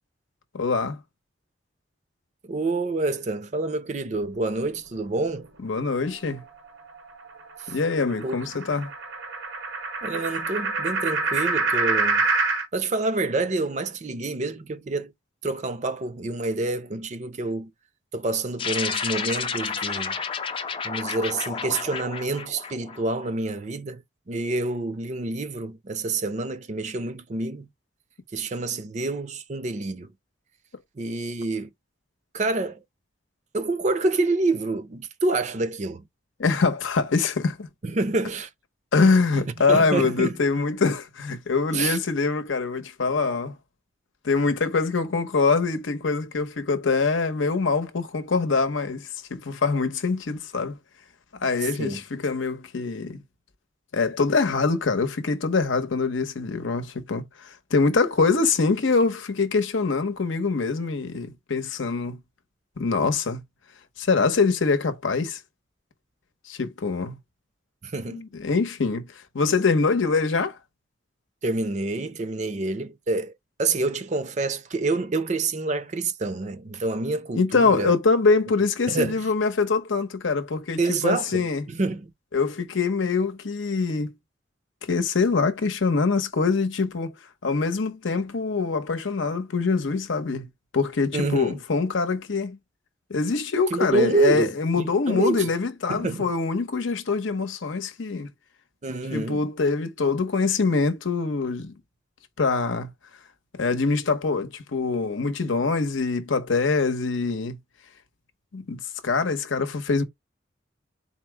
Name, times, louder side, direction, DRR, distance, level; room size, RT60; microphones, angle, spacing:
voice 1, 0.5-1.0 5.6-6.4 7.7-8.9 36.4-37.7 38.9-43.5 44.2-50.8 51.4-53.2 53.9-62.2 62.8-63.4 64.0-65.4 66.5-67.2 68.1-69.1 69.3-70.6 77.3-81.6 82.3-84.1 84.8-87.1 87.4-90.5 90.7-92.6 93.1-98.3 99.1-101.7 102.4-102.9 103.5-107.6 108.5-110.0, left 4 dB, 85° left, 0.8 m, -24 dB
voice 2, 2.4-5.5 7.6-7.8 8.2-8.3 10.0-12.3 12.7-15.1 15.4-17.7 18.1-20.2 20.8-27.7 28.3-30.1 31.0-31.7 32.3-32.8 33.5-36.0 37.8-38.5 39.7-40.3 41.7-42.0 51.6-52.0 67.8-68.2 71.4-73.3 73.6-78.0 78.9-79.3 80.8-82.1 91.1-91.6 93.7-95.5 95.9-96.3 98.8-99.4, right 2 dB, 35° right, 0.5 m, -27 dB
sound 1, 5.9-12.7, right 3 dB, 85° right, 0.9 m, -27 dB
sound 2, 18.6-23.3, left 6 dB, 25° left, 0.4 m, -31 dB
4.2 x 2.1 x 4.4 m
head